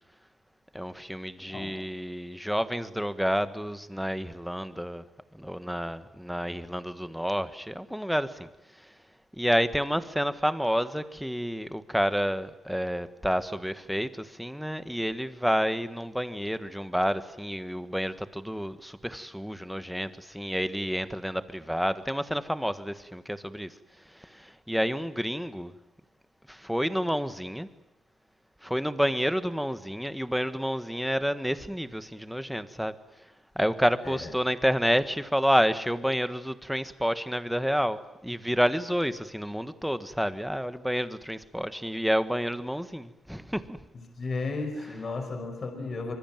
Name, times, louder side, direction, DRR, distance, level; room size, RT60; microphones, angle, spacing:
voice 1, 0.7-5.0 5.3-8.5 9.4-23.7 24.2-25.7 26.5-27.7 28.6-33.0 33.5-43.8, equal, ahead, 1.6 m, -29 dB
voice 2, 43.9-46.1, left 3 dB, 40° left, 5.5 m, -34 dB
25.5 x 24.0 x 9.2 m
cardioid pair, 120°, 0 cm